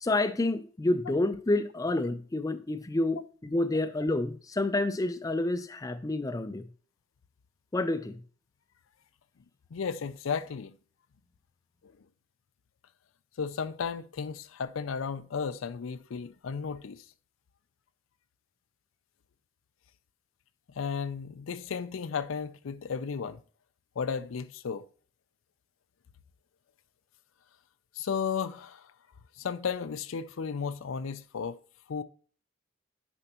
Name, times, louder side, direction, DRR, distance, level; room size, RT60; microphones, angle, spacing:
voice 1, 0.0-6.6 7.7-8.2, left 2 dB, 20° left, 0.4 m, -29 dB
voice 2, 9.7-10.7 13.4-17.0 20.7-23.4 24.0-24.9 28.0-28.9 29.4-31.6 31.9-32.0, left 6 dB, 90° left, 0.5 m, -34 dB
9.9 x 5.1 x 2.9 m
head